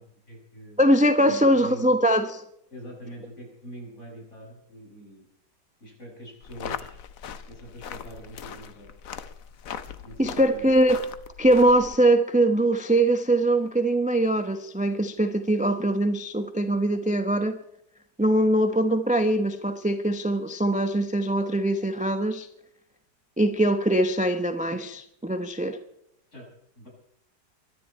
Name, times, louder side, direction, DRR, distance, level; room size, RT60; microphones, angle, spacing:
voice 1, 0.0-0.9 1.2-1.9 2.7-5.3 5.8-7.0 7.5-8.9 10.0-10.7 26.3-26.5 26.8-26.9, equal, 40° left, -1 dB, 7.2 m, -44 dB
voice 2, 0.8-2.4 10.2-11.0 11.4-17.6 18.2-22.5 23.4-25.8, right 1 dB, 5° right, 8 dB, 0.6 m, -22 dB
sound 1, 6.4-12.0, left 8 dB, 55° left, 1.2 m, -39 dB
24.0 x 11.0 x 4.4 m, 0.75 s
omnidirectional pair, 1.8 m